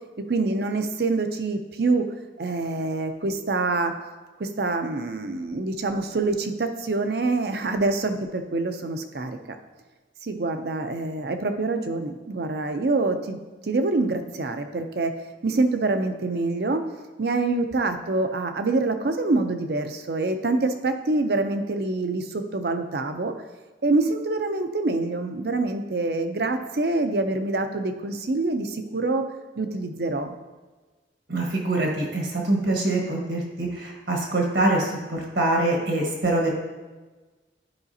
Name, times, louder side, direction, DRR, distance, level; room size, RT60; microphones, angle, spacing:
voice 1, 0.2-2.1 2.4-3.9 4.4-9.6 10.2-15.1 15.4-16.9 17.2-23.3 23.8-29.2 29.6-30.3, right 3 dB, 60° right, 7 dB, 0.6 m, -26 dB
voice 2, 31.3-36.5, right 2 dB, 75° right, -1 dB, 1.5 m, -24 dB
10.5 x 4.9 x 2.8 m, 1.3 s
head